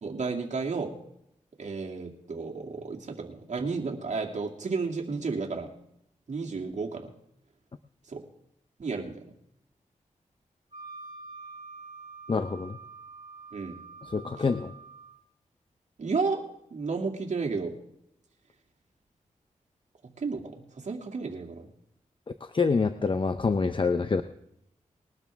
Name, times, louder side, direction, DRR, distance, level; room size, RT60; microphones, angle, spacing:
voice 1, 0.0-0.9 1.6-5.7 6.3-7.1 8.1-8.2 8.8-9.3 13.5-13.8 16.0-16.4 16.7-17.7 20.2-21.7, right 4 dB, 60° right, 0 dB, 2.4 m, -32 dB
Wind instrument woodwind instrument, 10.7-15.2, right 4 dB, 35° right, 5.2 m, -46 dB
voice 2, 12.3-12.8 14.0-14.7 22.4-24.2, left 4 dB, 40° left, 9 dB, 0.7 m, -26 dB
21.0 x 12.5 x 3.5 m, 0.75 s
cardioid pair, 70°, 14 cm